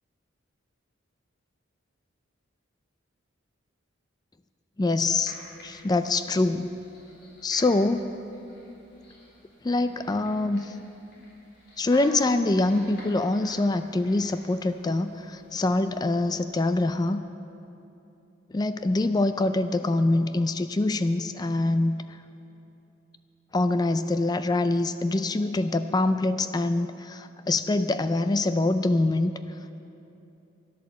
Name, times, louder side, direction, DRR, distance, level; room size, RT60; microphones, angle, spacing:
voice 1, 4.8-5.3 5.6-6.7 7.4-8.1 9.6-10.8 11.8-17.2 18.5-22.0 23.5-29.3, left 2 dB, 20° left, 11 dB, 0.3 m, -24 dB
sound 1, 5.2-17.1, left 1 dB, 55° left, 3.7 m, -50 dB
13.0 x 11.0 x 7.2 m, 2.8 s
head